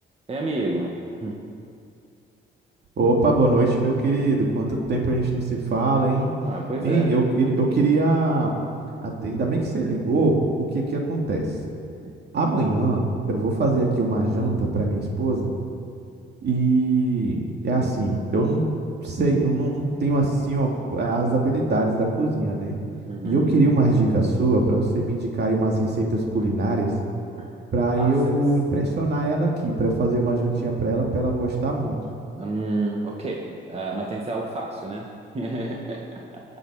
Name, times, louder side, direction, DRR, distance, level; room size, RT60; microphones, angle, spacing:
voice 1, 0.3-1.4 6.4-7.1 23.1-23.6 27.4-27.5 28.0-28.4 32.4-36.4, right 2 dB, 30° right, -1 dB, 1.7 m, -30 dB
voice 2, 3.0-6.3 6.8-8.5 9.0-10.3 10.7-11.5 12.3-13.0 13.3-15.5 16.4-18.6 19.0-22.8 23.2-26.9 27.7-32.0, right 2 dB, 55° right, 0 dB, 2.6 m, -22 dB
22.5 x 8.1 x 5.0 m, 2.4 s
cardioid pair, 90°, 20 cm